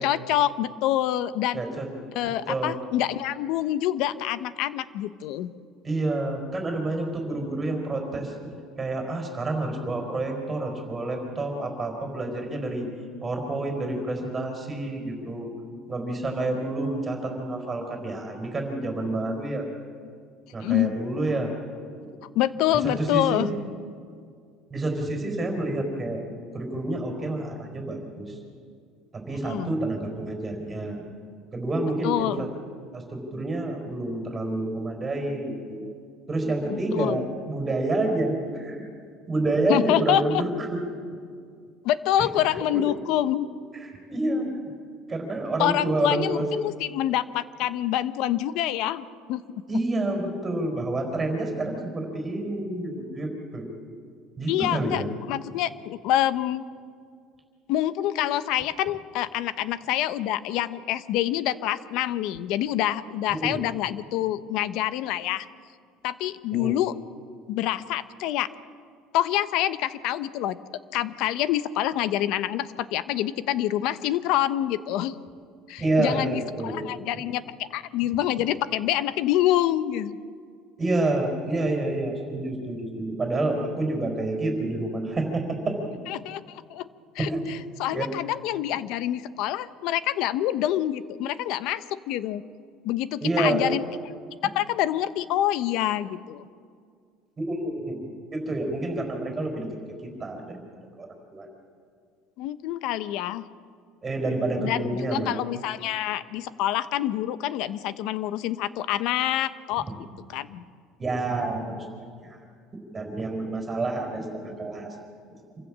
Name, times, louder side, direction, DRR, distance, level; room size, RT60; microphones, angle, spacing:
voice 1, 0.0-1.6 2.1-5.5 20.6-20.9 22.3-23.5 29.5-29.7 32.0-32.4 36.7-37.2 39.7-40.4 41.8-43.5 45.6-49.4 54.5-56.7 57.7-65.5 66.0-66.9 67.5-68.5 69.1-70.6 70.9-75.2 75.7-80.2 86.1-86.9 87.1-92.4 92.8-93.8 94.4-96.5 102.4-103.4 104.6-110.0 110.3-110.6, left 12 dB, 65° left, 14 dB, 0.9 m, -26 dB
voice 2, 1.5-1.9 2.2-2.7 5.8-8.3 8.8-12.9 13.2-15.5 15.9-19.7 20.5-21.5 22.0-22.1 22.8-23.4 24.7-26.2 26.5-28.4 29.1-31.0 31.5-32.5 32.9-35.8 36.3-38.9 39.3-40.8 42.2-42.3 42.7-42.8 43.8-44.5 45.1-46.4 49.7-53.8 54.4-55.1 63.3-63.6 66.5-66.8 75.8-76.8 80.8-85.8 87.3-87.4 87.9-88.1 93.2-93.6 97.4-98.0 98.3-99.7 100.0-100.6 101.0-101.5 104.0-105.4 111.0-111.9 112.2-112.4 112.9-114.9, right 2 dB, 20° right, 3 dB, 4.7 m, -28 dB
27.0 x 15.5 x 7.5 m, 2.1 s
cardioid pair, 135°, 0 cm